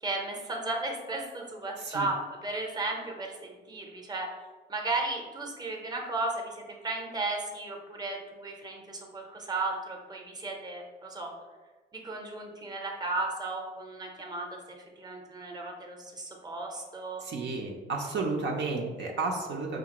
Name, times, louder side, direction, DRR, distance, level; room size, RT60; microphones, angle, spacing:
voice 1, 0.0-4.3 4.7-11.3 11.9-14.6 15.0-17.2, right 2 dB, 20° right, 1 dB, 0.8 m, -35 dB
voice 2, 17.2-19.8, right 3 dB, 65° right, 0 dB, 0.6 m, -32 dB
4.9 x 2.5 x 2.9 m, 1.4 s
cardioid pair, 90°, 20 cm